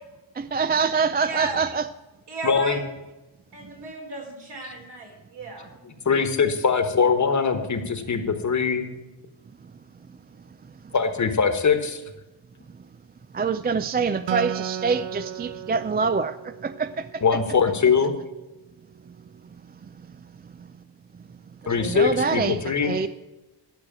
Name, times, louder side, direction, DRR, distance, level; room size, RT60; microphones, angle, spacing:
voice 1, 0.4-1.9 13.3-17.2 21.6-23.1, right 5 dB, 25° right, 12 dB, 0.3 m, -25 dB
voice 2, 1.3-1.6 2.3-2.8 3.5-5.7, right 2 dB, 60° right, 0 dB, 4.2 m, -34 dB
voice 3, 2.4-2.8 4.6-4.7 5.8-8.9 10.9-12.0 17.2-18.1 21.7-22.9, left 5 dB, 40° left, 8 dB, 1.3 m, -22 dB
Acoustic guitar, 14.3-17.7, right 9 dB, 80° right, 0.8 m, -35 dB
12.5 x 6.4 x 8.6 m, 1.1 s
wide cardioid pair, 150°, 44 cm